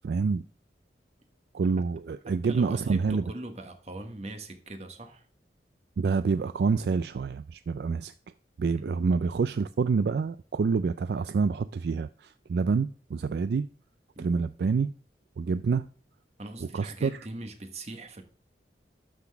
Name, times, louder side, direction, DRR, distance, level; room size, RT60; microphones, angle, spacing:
voice 1, 0.0-0.4 1.5-3.2 6.0-8.1 8.6-13.7 14.2-14.9 15.4-15.9 16.7-17.2, right 5 dB, 65° right, 0.3 m, -27 dB
voice 2, 2.2-5.3 8.8-9.1 14.1-14.5 15.4-15.6 16.4-18.2, right 2 dB, 35° right, 1.2 m, -41 dB
12.0 x 5.9 x 3.4 m
head